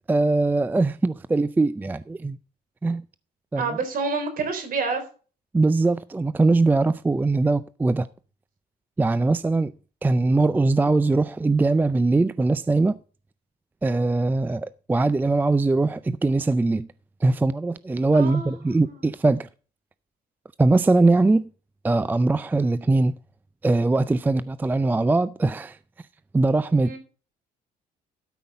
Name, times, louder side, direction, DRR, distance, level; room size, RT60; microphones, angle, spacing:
voice 1, 0.1-2.4 2.8-3.0 3.5-3.8 5.5-8.1 9.0-9.7 10.0-13.0 13.8-16.9 17.2-19.5 20.6-21.5 21.8-23.1 23.6-25.8 26.3-27.0, right 3 dB, 10° right, 0.4 m, -21 dB
voice 2, 3.6-5.0 18.1-18.5 26.9-27.0, right 4 dB, 55° right, 3.7 m, -27 dB
12.5 x 5.6 x 5.3 m
cardioid pair, 110°, 17 cm